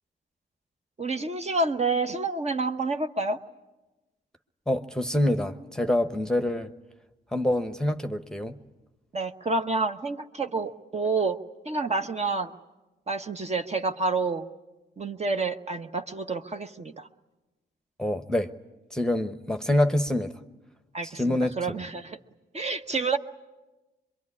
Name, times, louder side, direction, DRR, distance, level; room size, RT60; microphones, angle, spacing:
voice 1, 1.0-3.4 9.1-11.4 11.6-12.5 13.1-14.5 15.0-17.1 20.9-22.2 22.5-23.2, right 3 dB, 35° right, 6 dB, 1.1 m, -28 dB
voice 2, 4.7-6.7 7.3-8.6 18.0-18.5 18.9-20.3 21.1-21.5, left 1 dB, 5° left, 9 dB, 1.0 m, -26 dB
24.5 x 22.5 x 9.8 m, 1.1 s
cardioid pair, 80°, 19 cm